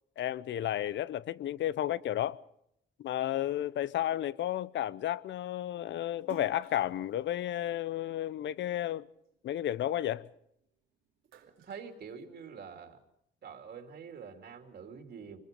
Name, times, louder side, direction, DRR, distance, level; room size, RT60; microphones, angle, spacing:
voice 1, 0.2-2.4 3.0-9.1 9.4-10.3, left 12 dB, 65° left, 0.7 m, -32 dB
Splash splatter, 6.2-8.8 9.2-10.7 11.0-12.7, right 9 dB, 90° right, 2.6 m, -55 dB
voice 2, 11.4-13.0 13.4-15.4, right 6 dB, 55° right, 2.9 m, -46 dB
25.0 x 21.5 x 5.3 m
cardioid pair, 90°, 20 cm